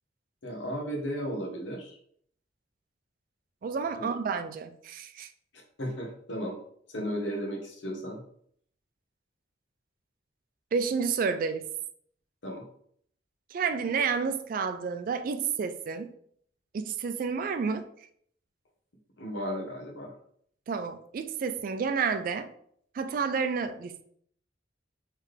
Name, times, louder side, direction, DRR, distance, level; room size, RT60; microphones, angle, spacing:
voice 1, 0.4-2.0 3.9-4.1 5.8-6.6 6.9-8.2 12.4-12.7 19.2-20.1, equal, 80° left, 1 dB, 1.0 m, -34 dB
voice 2, 3.6-5.3 10.7-11.7 13.5-16.1 16.7-17.9 20.7-22.5 22.9-24.0, right 5 dB, 50° right, 8 dB, 0.3 m, -30 dB
3.8 x 3.2 x 3.2 m, 0.64 s
head